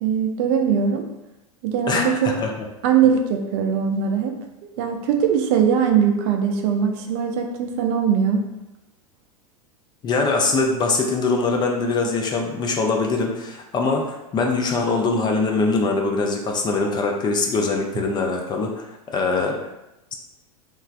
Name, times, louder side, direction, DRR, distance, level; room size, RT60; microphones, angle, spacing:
voice 1, 0.0-1.1 1.6-2.3 2.8-4.4 4.6-8.4, right 7 dB, 50° right, 3 dB, 0.4 m, -21 dB
voice 2, 1.9-2.5 10.0-19.6, left 3 dB, 25° left, 2 dB, 0.4 m, -22 dB
3.1 x 2.2 x 2.4 m, 0.92 s
hypercardioid pair, 95°, 18 cm